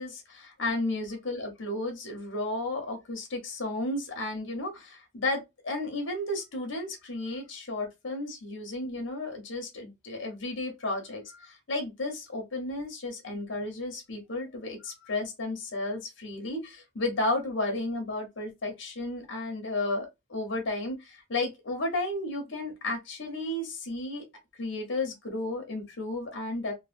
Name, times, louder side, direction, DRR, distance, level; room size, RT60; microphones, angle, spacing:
voice 1, 0.0-24.2 24.6-26.7, left 2 dB, 75° left, 1.0 m, -33 dB
3.2 x 2.2 x 2.5 m
head